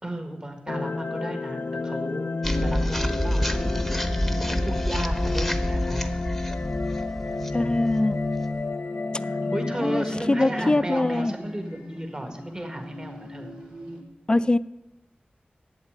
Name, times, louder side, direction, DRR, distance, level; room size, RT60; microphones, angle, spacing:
voice 1, 0.0-2.3 2.6-4.1 4.5-6.0 7.2-7.8 9.2-13.6, right 1 dB, 25° right, 5 dB, 1.5 m, -34 dB
sound 1, 0.7-10.9, left 3 dB, 70° left, 0.6 m, -31 dB
sound 2, 2.4-8.6, equal, ahead, 0.9 m, -28 dB
sound 3, 2.4-14.0, equal, 50° right, 3.4 m, -41 dB
voice 2, 7.5-8.2 9.8-11.3 14.3-14.6, left 2 dB, 25° left, 15 dB, 0.3 m, -23 dB
8.1 x 8.0 x 8.8 m, 0.96 s
wide cardioid pair, 70°, 3 cm